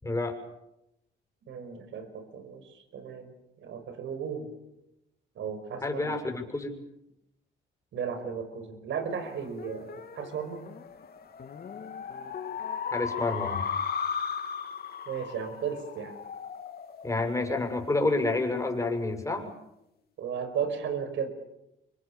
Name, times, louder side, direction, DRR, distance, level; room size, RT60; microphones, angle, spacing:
voice 1, 0.0-0.4 5.8-6.8 12.9-13.6 17.0-19.5, left 2 dB, 15° left, 4 dB, 6.9 m, -29 dB
voice 2, 1.5-3.3 3.6-4.5 5.4-6.1 7.9-10.6 15.1-16.1 20.2-21.3, right 7 dB, 75° right, 9 dB, 5.8 m, -35 dB
sound 1, 9.3-18.1, left 7 dB, 50° left, 3.1 m, -37 dB
28.5 x 25.0 x 7.4 m, 0.86 s
cardioid pair, 90°, 20 cm